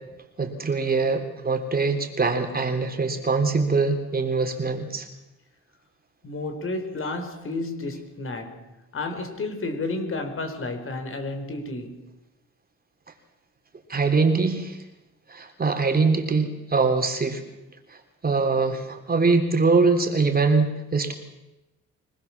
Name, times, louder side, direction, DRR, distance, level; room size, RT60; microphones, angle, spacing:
voice 1, 0.4-5.1 13.9-14.8 15.3-17.4 18.2-21.1, right 4 dB, 30° right, 3.5 m, -23 dB
voice 2, 6.2-12.1, left 2 dB, 45° left, 4.6 m, -32 dB
25.0 x 19.5 x 7.3 m
cardioid pair, 90°, 30 cm